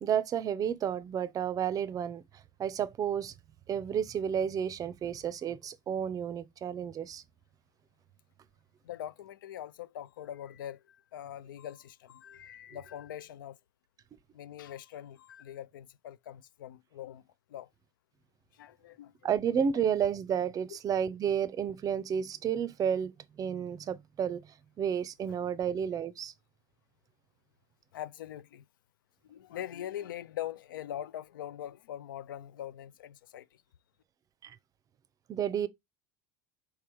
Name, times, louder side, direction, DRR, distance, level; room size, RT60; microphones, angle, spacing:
voice 1, 0.0-2.2 2.6-3.3 3.7-7.2 19.2-23.1 23.4-24.4 24.8-26.3 34.4-34.6 35.3-35.7, right 8 dB, 35° right, 0.5 m, -31 dB
voice 2, 8.8-13.6 14.3-17.7 18.5-19.1 19.5-19.6 21.2-21.3 27.9-28.6 29.2-33.6, left 11 dB, 80° left, 0.4 m, -43 dB
4.5 x 3.4 x 2.9 m
hypercardioid pair, 85°, 11 cm